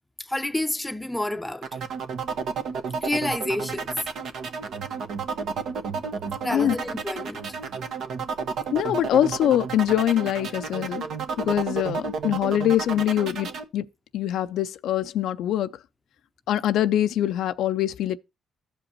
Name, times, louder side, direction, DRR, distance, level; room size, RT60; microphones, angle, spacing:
voice 1, 0.2-1.7 3.0-3.9 6.4-7.4, left 1 dB, 10° left, 0.6 m, -29 dB
sound 1, 1.6-13.6, right 5 dB, 70° right, 1.1 m, -31 dB
voice 2, 8.7-11.0 11.4-13.9 14.1-15.7 16.5-18.2, left 11 dB, 80° left, 0.4 m, -24 dB
14.5 x 5.1 x 2.9 m
cardioid pair, 90°, 0 cm